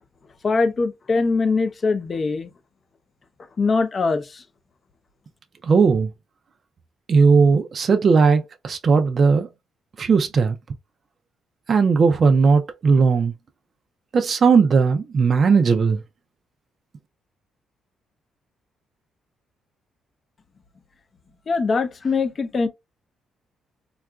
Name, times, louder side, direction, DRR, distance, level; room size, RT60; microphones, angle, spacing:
voice 1, 0.4-2.5 3.6-4.4 21.5-22.7, left 4 dB, 40° left, 0.5 m, -22 dB
voice 2, 5.6-6.1 7.1-9.5 10.0-10.6 11.7-13.3 14.1-16.0, right 5 dB, 45° right, 0.4 m, -17 dB
3.7 x 2.3 x 2.2 m
cardioid pair, 90°, 0 cm